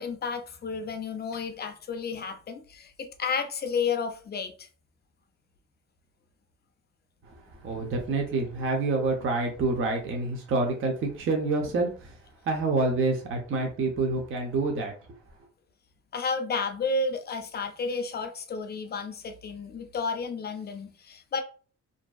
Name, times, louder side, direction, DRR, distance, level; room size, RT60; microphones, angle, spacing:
voice 1, 0.0-4.7 16.1-21.4, left 4 dB, 35° left, 0.4 m, -32 dB
voice 2, 7.2-15.2, right 3 dB, 45° right, 0.6 m, -28 dB
2.6 x 2.2 x 2.2 m
cardioid pair, 90°, 30 cm